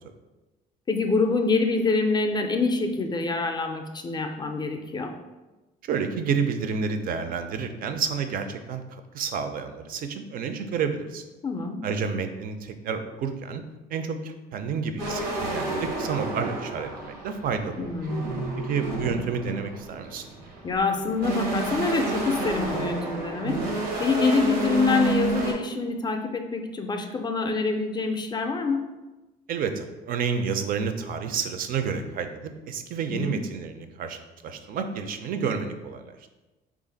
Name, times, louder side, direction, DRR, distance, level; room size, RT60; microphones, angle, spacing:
voice 1, 0.9-5.1 11.4-11.8 17.8-18.3 20.6-23.6 24.0-28.8 33.1-33.4, left 4 dB, 25° left, 5 dB, 0.4 m, -26 dB
voice 2, 5.8-11.2 11.8-13.6 13.9-17.9 18.6-20.2 29.5-36.2, right 6 dB, 55° right, 8 dB, 0.4 m, -30 dB
sound 1, 15.0-25.5, right 2 dB, 90° right, 0.8 m, -30 dB
3.4 x 2.4 x 3.8 m, 1.1 s
cardioid pair, 110°, 17 cm